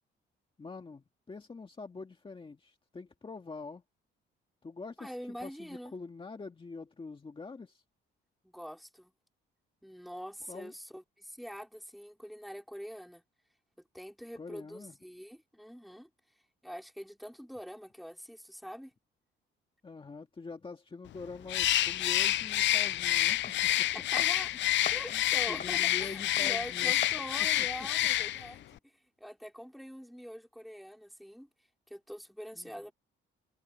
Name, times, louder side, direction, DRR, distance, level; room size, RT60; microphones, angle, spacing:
voice 1, 0.6-3.8 4.6-5.1 5.4-7.8 10.5-10.7 14.4-15.0 19.8-23.9 24.4-24.5 25.1-25.2 25.5-26.9 32.6-32.7, left 4 dB, 25° left, 1.9 m, -45 dB
voice 2, 5.0-5.9 8.4-9.1 9.8-13.2 13.9-16.1 16.6-18.9 23.9-24.5 24.9-31.5 31.9-32.9, equal, ahead, 4.2 m, -44 dB
Bird, 21.5-28.6, left 14 dB, 65° left, 0.5 m, -28 dB
sound 1, 23.4-28.5, left 6 dB, 45° left, 5.1 m, -47 dB
cardioid pair, 90°, 20 cm